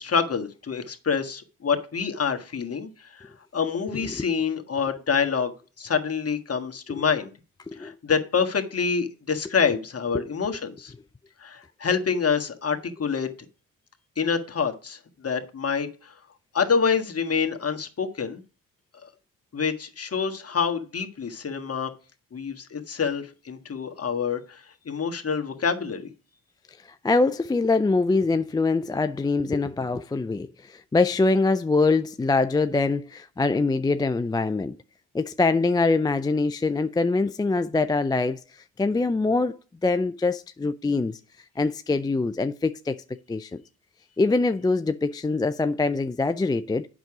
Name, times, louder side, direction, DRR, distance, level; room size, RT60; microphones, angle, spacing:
voice 1, 0.0-3.3 3.5-7.3 7.8-10.9 11.4-13.3 14.2-16.1 16.5-18.4 19.5-21.9 22.3-26.0, left 6 dB, 35° left, 1.6 m, -27 dB
voice 2, 27.0-34.8 35.1-39.6 39.8-41.2 41.6-43.0 43.3-43.6 44.2-46.9, left 3 dB, 10° left, 0.3 m, -24 dB
8.0 x 6.1 x 4.9 m
supercardioid pair, 55°, 41 cm